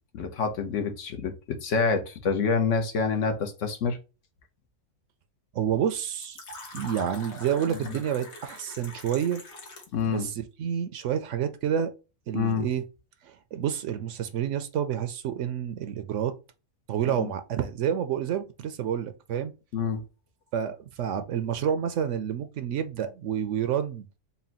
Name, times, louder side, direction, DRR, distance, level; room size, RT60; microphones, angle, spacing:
voice 1, 0.1-4.0 9.9-10.3 12.3-12.7 17.2-17.3 19.7-20.0, left 5 dB, 65° left, 1.1 m, -27 dB
voice 2, 5.5-6.4 6.7-9.4 10.0-11.9 12.3-12.8 13.2-16.3 16.9-19.5 20.5-24.1, right 9 dB, 70° right, 0.8 m, -29 dB
Fill (with liquid), 6.2-10.1, left 2 dB, 85° left, 1.6 m, -43 dB
4.2 x 2.2 x 4.0 m
omnidirectional pair, 1.4 m